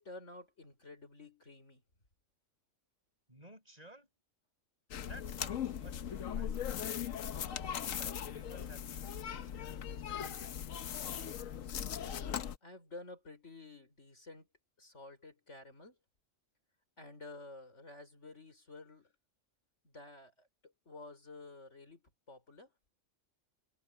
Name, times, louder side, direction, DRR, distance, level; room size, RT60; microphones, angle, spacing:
voice 1, 0.0-1.8 12.6-14.5 14.8-16.0 17.0-19.1 19.8-22.0 22.3-22.7, left 2 dB, 60° left, 5.1 m, -51 dB
voice 2, 3.3-4.1 5.1-6.8 7.8-10.7, right 1 dB, 30° right, 8.0 m, -57 dB
sound 1, 4.9-12.6, left 9 dB, 75° left, 1.3 m, -39 dB
omnidirectional pair, 1.4 m